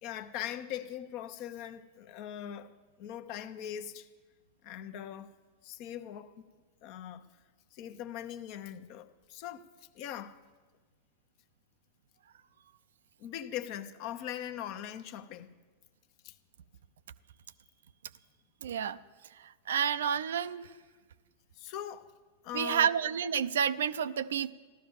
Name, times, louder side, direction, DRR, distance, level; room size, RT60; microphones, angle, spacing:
voice 1, 0.0-2.7 3.0-4.1 4.6-5.3 5.6-6.4 6.8-7.2 7.7-9.6 9.9-10.3 13.2-15.5 16.2-16.3 21.6-22.1 22.4-22.9, left 10 dB, 45° left, 0.9 m, -41 dB
voice 2, 18.6-19.0 19.4-20.7 22.5-24.5, right 8 dB, 60° right, 0.5 m, -30 dB
15.0 x 12.5 x 7.3 m
figure-of-eight pair, 90°, 0 cm